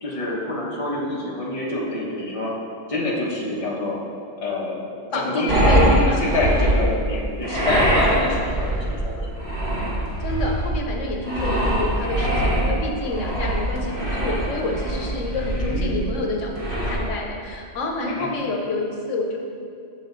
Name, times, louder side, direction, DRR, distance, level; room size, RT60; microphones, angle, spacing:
voice 1, 0.0-2.6 2.9-4.0 4.4-4.9 5.1-9.3 11.5-11.7 15.6-16.1 18.0-18.3, left 2 dB, 30° left, -5 dB, 1.3 m, -27 dB
voice 2, 5.1-6.2 10.2-19.4, left 2 dB, 85° left, 0 dB, 1.2 m, -28 dB
sound 1, 5.5-17.0, right 1 dB, 50° right, 1.9 m, -22 dB
7.4 x 6.7 x 3.8 m, 2.4 s
omnidirectional pair, 1.2 m